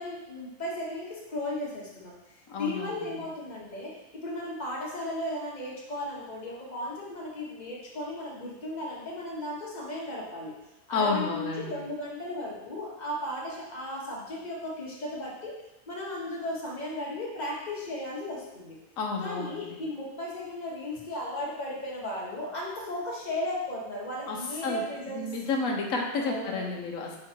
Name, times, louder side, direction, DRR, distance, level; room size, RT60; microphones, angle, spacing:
voice 1, 0.0-10.5 10.9-15.5 15.9-18.8 19.2-25.3 26.2-26.9, left 1 dB, 30° left, -4 dB, 1.3 m, -35 dB
voice 2, 2.5-3.0 10.9-11.8 19.0-19.7 24.3-24.4 24.6-24.8 25.1-27.2, left 4 dB, 65° left, 0 dB, 1.3 m, -30 dB
5.5 x 3.8 x 4.5 m, 0.99 s
omnidirectional pair, 1.5 m